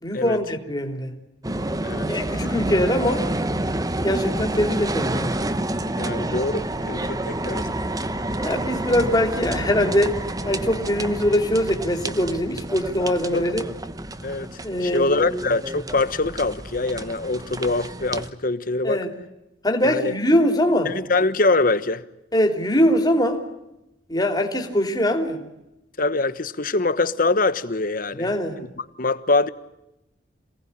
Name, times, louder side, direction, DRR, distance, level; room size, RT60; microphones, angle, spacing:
voice 1, 0.0-1.1 2.1-3.3 4.0-5.3 8.4-10.2 10.4-13.6 14.6-15.4 18.8-19.1 19.6-20.9 22.3-23.4 24.1-25.4 28.1-28.6, left 1 dB, 20° left, 3.2 m, -22 dB
sound 1, 1.4-18.3, right 1 dB, 20° right, 1.0 m, -29 dB
voice 2, 6.0-7.8 13.3-13.4 14.2-19.0 19.8-20.1 20.8-22.0 26.0-29.5, left 3 dB, 50° left, 1.2 m, -24 dB
27.0 x 18.5 x 10.0 m
head